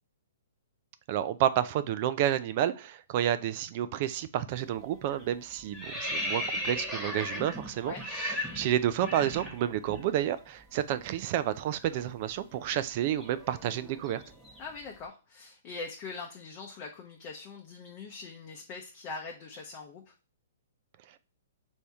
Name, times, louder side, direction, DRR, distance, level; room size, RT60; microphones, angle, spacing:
voice 1, 1.1-14.2, right 11 dB, 45° right, 0.3 m, -30 dB
sound 1, 4.5-4.8 5.1-10.0 10.3-10.5 10.8-14.9, left 1 dB, 5° right, 1.0 m, -37 dB
voice 2, 14.6-20.1, left 4 dB, 35° left, 0.7 m, -42 dB
3.4 x 2.7 x 4.3 m
hypercardioid pair, 135°, 0 cm